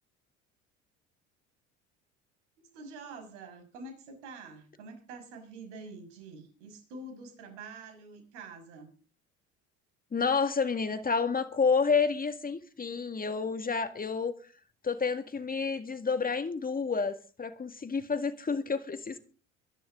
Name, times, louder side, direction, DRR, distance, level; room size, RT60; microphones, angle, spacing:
voice 1, 2.6-8.9, right 3 dB, 70° right, 6.0 m, -46 dB
voice 2, 10.1-14.3 14.8-19.2, left 5 dB, 25° left, 2.0 m, -29 dB
23.5 x 11.5 x 3.7 m
hypercardioid pair, 65°, 36 cm